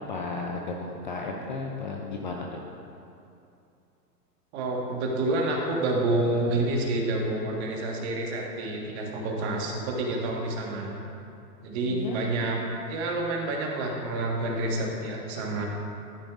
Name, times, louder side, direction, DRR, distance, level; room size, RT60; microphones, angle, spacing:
voice 1, 0.1-2.6 11.9-12.2, left 3 dB, 35° left, 0 dB, 0.4 m, -34 dB
voice 2, 4.5-11.0 11.6-12.6 12.9-15.6, right 2 dB, 40° right, 0 dB, 1.4 m, -28 dB
12.5 x 6.2 x 2.4 m, 2.6 s
hypercardioid pair, 135°, 49 cm